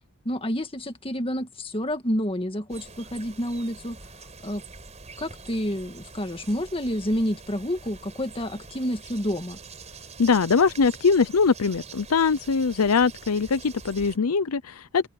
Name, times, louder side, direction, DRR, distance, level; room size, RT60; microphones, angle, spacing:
voice 1, 0.3-4.0 4.4-4.6 5.2-9.6, equal, 25° left, 1.8 m, -29 dB
sound 1, 2.7-14.2, right 4 dB, 30° right, 5.2 m, -45 dB
voice 2, 10.2-15.1, left 5 dB, 75° left, 0.6 m, -22 dB
open air
head